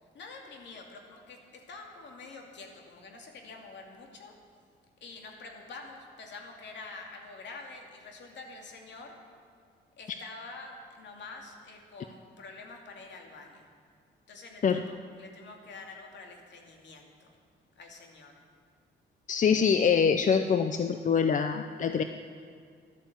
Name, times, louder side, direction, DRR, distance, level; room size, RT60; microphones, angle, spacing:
voice 1, 0.1-4.4 5.0-9.2 10.0-13.7 14.3-17.4 17.8-18.4, left 3 dB, 65° left, 2 dB, 2.6 m, -47 dB
voice 2, 19.3-22.0, left 6 dB, 40° left, 8 dB, 0.6 m, -24 dB
12.0 x 11.5 x 8.0 m, 2.1 s
cardioid pair, 90°, 20 cm